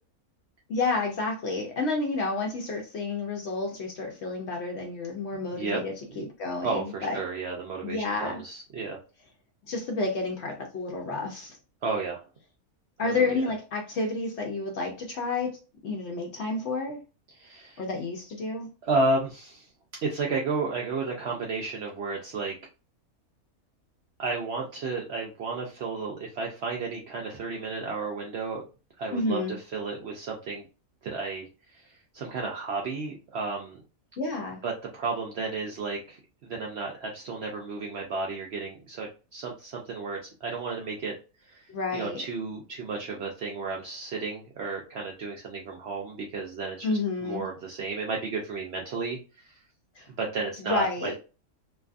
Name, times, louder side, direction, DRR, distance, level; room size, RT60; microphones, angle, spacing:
voice 1, 0.7-7.2 7.8-8.4 9.7-11.6 13.0-17.0 17.8-18.7 29.1-29.6 34.2-34.6 41.7-42.2 46.8-47.5 50.0-50.1 50.7-51.1, left 3 dB, 65° left, 0.7 m, -30 dB
voice 2, 6.6-9.0 11.8-12.2 13.0-13.4 17.3-17.8 18.9-19.7 20.0-22.5 24.2-28.6 29.0-30.6 31.0-33.8 34.6-41.1 41.4-41.6 41.9-46.9 47.2-49.6 50.2-51.1, right 3 dB, 65° right, 0.6 m, -32 dB
2.6 x 2.3 x 2.4 m
omnidirectional pair, 1.5 m